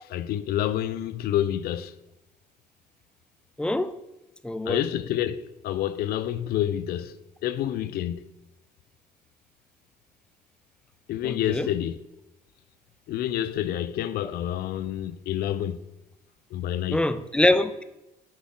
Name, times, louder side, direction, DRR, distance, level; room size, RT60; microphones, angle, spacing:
voice 1, 0.0-1.9 4.7-8.2 11.1-12.0 13.1-15.8 16.5-17.1, left 11 dB, 65° left, 0.4 m, -28 dB
voice 2, 3.6-4.0 4.4-4.8 11.2-11.7 16.9-17.8, left 1 dB, 5° left, 0.3 m, -24 dB
6.2 x 5.8 x 3.7 m
cardioid pair, 110°, 17 cm